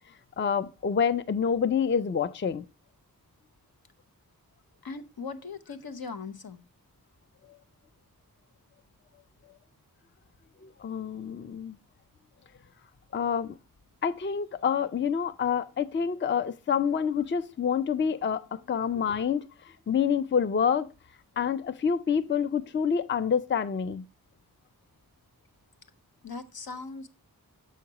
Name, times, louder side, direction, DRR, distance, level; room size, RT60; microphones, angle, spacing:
voice 1, 0.4-2.7 10.8-11.8 13.1-13.5 14.0-19.5 19.9-20.9 21.4-24.0, left 7 dB, 30° left, 0.4 m, -27 dB
voice 2, 4.8-6.6 18.9-19.0 26.2-27.1, left 4 dB, 80° left, 0.9 m, -39 dB
7.2 x 5.8 x 2.8 m
wide cardioid pair, 70°, 36 cm